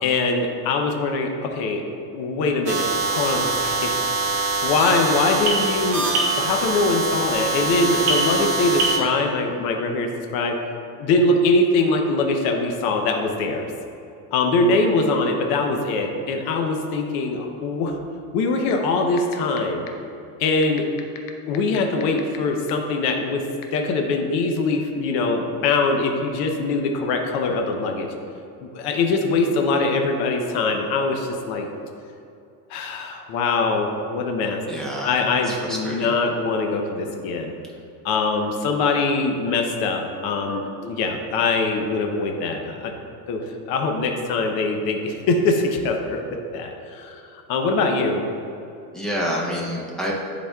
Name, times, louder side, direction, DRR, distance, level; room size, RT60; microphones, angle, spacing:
voice 1, 0.0-1.8 2.1-4.3 4.6-10.5 10.9-13.7 14.3-17.9 18.3-19.8 20.4-20.9 21.5-23.4 23.7-28.1 28.6-31.7 32.7-34.6 35.0-37.5 38.0-42.9 43.3-43.4 43.7-46.2 46.5-48.2, left 3 dB, 55° left, 3 dB, 0.7 m, -23 dB
sound 1, 2.7-9.0, right 3 dB, 40° right, 1.1 m, -23 dB
sound 2, 18.7-18.8 19.2-19.6 19.9-20.0 20.6-22.4 22.7-22.8 23.6-23.8, left 13 dB, 90° left, 0.7 m, -35 dB
voice 2, 34.7-35.1 35.4-36.1 48.9-50.1, equal, ahead, -4 dB, 0.7 m, -28 dB
10.0 x 4.1 x 2.3 m, 2.7 s
cardioid pair, 145°, 45 cm